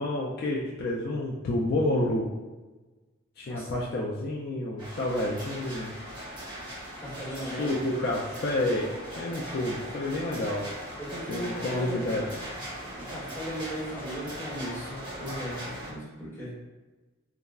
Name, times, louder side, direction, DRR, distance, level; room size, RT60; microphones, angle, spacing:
voice 1, 0.0-2.3 3.4-5.9 7.4-10.7 11.3-12.3, left 1 dB, 45° left, -3 dB, 0.3 m, -29 dB
sound 1, 4.8-15.9, equal, 20° right, 0.7 m, -39 dB
voice 2, 7.0-7.8 11.0-12.3 12.7-16.5, equal, 10° left, -9 dB, 0.9 m, -38 dB
3.4 x 2.0 x 2.3 m, 1.2 s
head